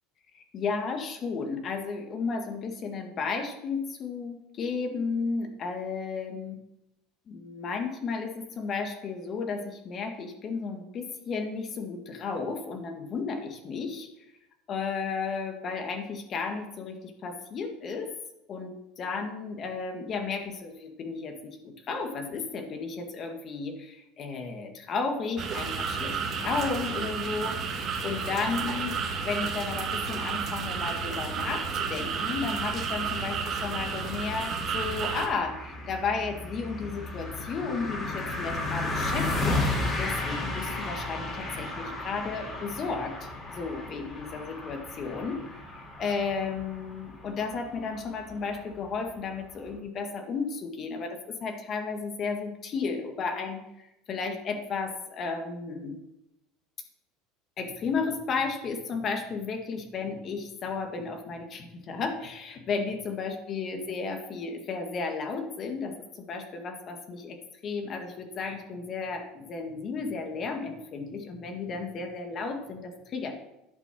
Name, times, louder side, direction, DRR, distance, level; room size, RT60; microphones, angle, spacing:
voice 1, 0.3-6.6 7.3-14.1 14.7-18.1 18.5-28.9 29.2-39.6 40.0-56.0 57.6-73.3, left 4 dB, 40° left, 4 dB, 1.9 m, -33 dB
sound 1, 25.4-35.3, right 5 dB, 40° right, 2.0 m, -32 dB
sound 2, 31.2-49.8, left 2 dB, 25° left, 3.2 m, -35 dB
11.0 x 6.0 x 6.2 m, 0.87 s
supercardioid pair, 115°, 0 cm